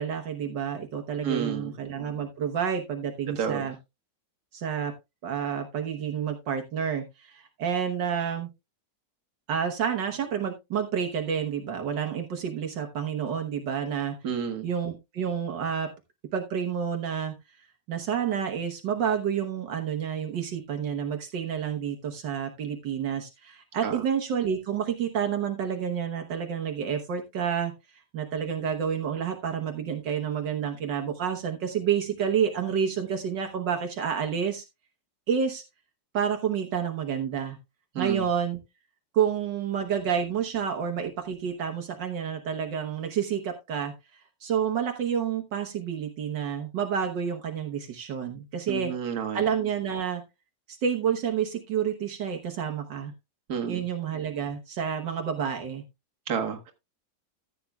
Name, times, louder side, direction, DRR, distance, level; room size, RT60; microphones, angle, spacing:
voice 1, 0.0-3.8 4.5-4.9 5.2-8.5 9.5-14.2 14.6-15.9 16.3-17.3 17.9-27.7 28.1-34.6 35.3-35.6 36.1-37.6 38.0-38.6 39.1-48.9 49.3-50.2 50.7-53.1 53.7-55.8, right 7 dB, 75° right, 1.8 m, -29 dB
voice 2, 1.2-1.7 3.4-3.7 14.2-14.7 23.8-24.0 37.9-38.2 48.7-49.4 53.5-53.8 56.3-56.7, right 7 dB, 60° right, 1.9 m, -30 dB
14.5 x 8.4 x 2.3 m
omnidirectional pair, 1.9 m